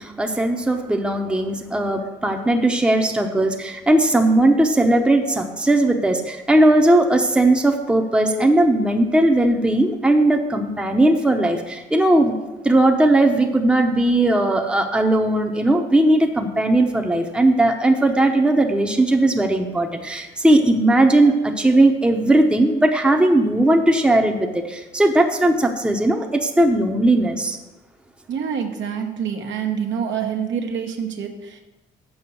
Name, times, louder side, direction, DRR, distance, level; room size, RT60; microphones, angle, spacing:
voice 1, 0.0-12.3 12.6-27.6, right 1 dB, 5° right, 3 dB, 0.8 m, -18 dB
voice 2, 28.3-31.6, right 7 dB, 70° right, 3 dB, 1.1 m, -26 dB
7.0 x 5.5 x 6.9 m, 1.1 s
cardioid pair, 90°, 20 cm